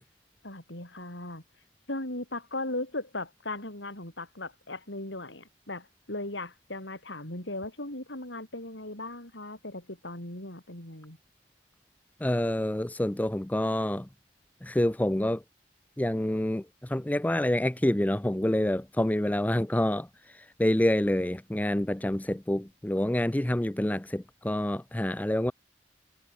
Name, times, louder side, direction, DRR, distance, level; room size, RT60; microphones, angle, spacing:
voice 1, 0.4-1.4 1.9-11.2, left 2 dB, 75° left, 7.1 m, -37 dB
voice 2, 12.2-14.1 14.6-15.4 16.0-20.1 20.3-25.5, left 1 dB, 10° left, 0.4 m, -27 dB
head